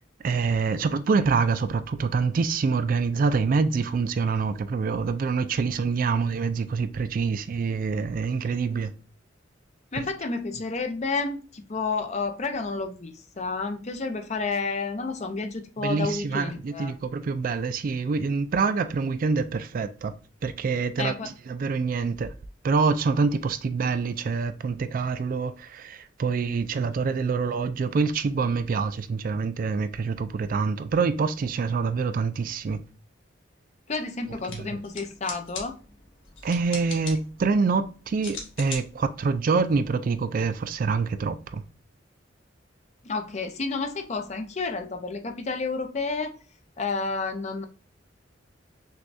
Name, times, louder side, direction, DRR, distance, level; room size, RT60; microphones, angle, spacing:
voice 1, 0.2-8.9 10.0-10.1 15.8-20.1 20.4-22.3 22.6-32.8 34.5-34.8 36.4-41.6, right 4 dB, 45° right, 0.3 m, -26 dB
voice 2, 9.9-16.9 21.0-21.3 33.9-35.8 43.0-46.3 46.8-47.7, left 4 dB, 35° left, 0.6 m, -30 dB
sound 1, 34.3-40.4, left 4 dB, 85° left, 1.4 m, -42 dB
6.2 x 2.3 x 2.6 m
head